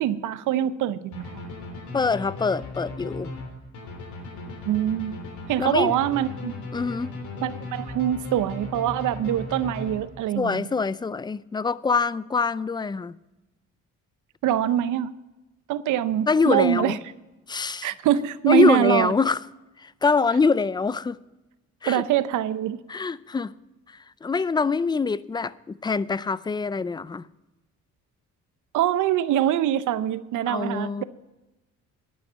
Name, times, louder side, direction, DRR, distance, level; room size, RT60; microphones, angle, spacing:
voice 1, 0.0-1.4 4.7-5.2 5.5-6.5 7.4-10.7 14.4-15.1 15.7-17.0 17.8-19.1 21.9-22.8 28.7-31.0, right 11 dB, 85° right, 0.7 m, -24 dB
sound 1, 1.1-10.4, left 2 dB, 70° left, 3.1 m, -37 dB
voice 2, 1.9-3.3 5.6-5.9 6.7-7.1 10.3-13.2 16.3-17.0 17.5-17.9 18.5-19.4 19.8-21.2 21.8-22.0 22.9-23.5 24.2-27.3 30.5-31.0, left 4 dB, 15° left, 0.4 m, -24 dB
11.0 x 9.5 x 5.6 m
cardioid pair, 90°, 30 cm